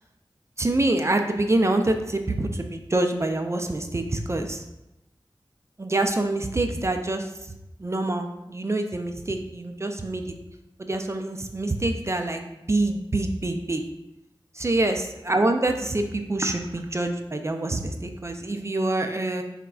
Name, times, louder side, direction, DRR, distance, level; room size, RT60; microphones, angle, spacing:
voice 1, 0.6-4.6 5.8-7.3 7.8-10.3 10.8-13.8 14.6-19.4, right 2 dB, 30° right, 5 dB, 0.3 m, -26 dB
4.0 x 3.5 x 2.3 m, 0.93 s
wide cardioid pair, 60°, 10 cm